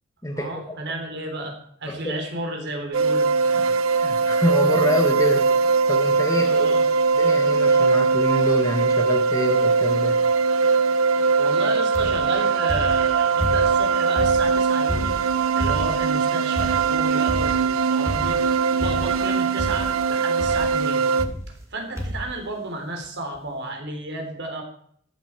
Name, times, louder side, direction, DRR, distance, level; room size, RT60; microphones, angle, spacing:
voice 1, 0.3-3.7 6.4-6.9 11.4-15.2 15.5-21.0 21.7-24.6, right 1 dB, 55° right, 3 dB, 3.7 m, -32 dB
sound 1, 2.9-21.2, right 5 dB, 80° right, 0.9 m, -21 dB
voice 2, 4.0-5.5 5.9-6.7 7.1-10.2, equal, 15° left, 1 dB, 1.6 m, -26 dB
sound 2, 11.9-12.3 12.7-13.8 14.2-16.1 16.6-17.0 17.3-17.7 18.1-18.5 18.8-19.3 19.6-20.0 20.4-20.7 21.2-21.7 22.0-22.3 23.0-23.1 23.3-23.4, equal, 15° right, 2.6 m, -30 dB
14.5 x 11.5 x 4.7 m, 0.62 s
head